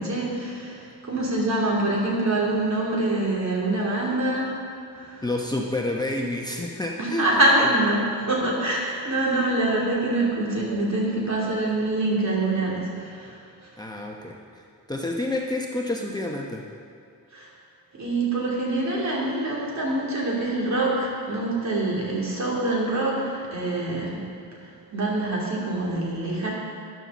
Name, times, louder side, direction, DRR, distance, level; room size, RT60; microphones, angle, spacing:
voice 1, 0.0-4.5 4.9-5.2 7.0-13.4 17.3-17.5 17.9-24.2 24.6-26.5, right 2 dB, 50° right, -5 dB, 3.3 m, -25 dB
voice 2, 5.2-7.2 13.8-14.6 14.9-16.6, left 2 dB, 10° left, -1 dB, 0.9 m, -29 dB
13.5 x 10.5 x 4.1 m, 2.3 s
wide cardioid pair, 125°, 35 cm